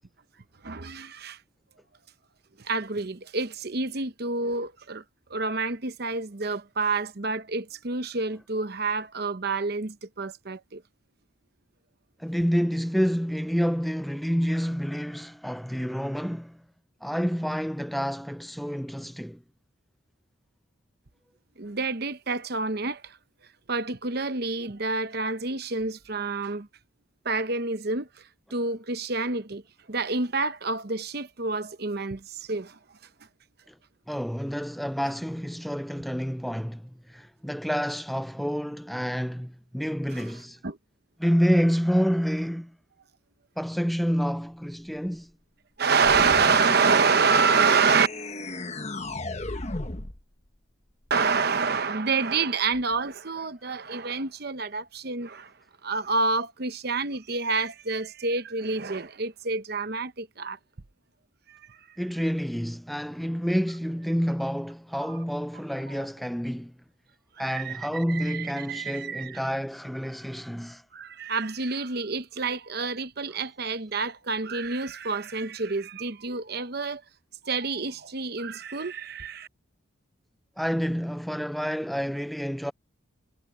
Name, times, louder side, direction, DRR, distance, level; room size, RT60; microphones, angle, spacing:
voice 1, 0.6-1.4 2.6-5.0 5.3-10.8 21.6-23.2 23.7-26.7 27.2-28.1 28.5-29.6 29.9-32.8 40.1-40.3 40.6-40.8 45.8-48.1 51.1-55.5 55.8-60.6 61.5-62.0 67.4-69.4 70.9-77.0 77.4-79.5, right 4 dB, 50° right, 0.9 m, -28 dB
voice 2, 12.2-16.6 17.0-19.4 33.7-33.8 34.1-40.6 41.2-42.7 43.6-45.3 62.0-66.7 67.4-70.8 80.6-82.7, equal, ahead, 0.3 m, -28 dB
sound 1, 46.0-50.2, left 2 dB, 30° left, 1.3 m, -35 dB
head